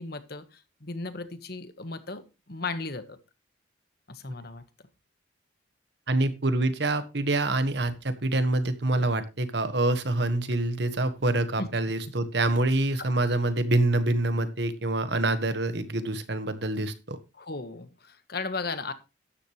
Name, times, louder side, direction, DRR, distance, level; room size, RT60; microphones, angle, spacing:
voice 1, 0.0-3.2 4.1-4.6 11.6-11.7 13.1-13.2 17.4-18.9, left 3 dB, 55° left, 10 dB, 1.5 m, -36 dB
voice 2, 6.1-17.2, right 2 dB, 60° right, 11 dB, 1.5 m, -26 dB
13.0 x 10.0 x 3.2 m, 0.27 s
head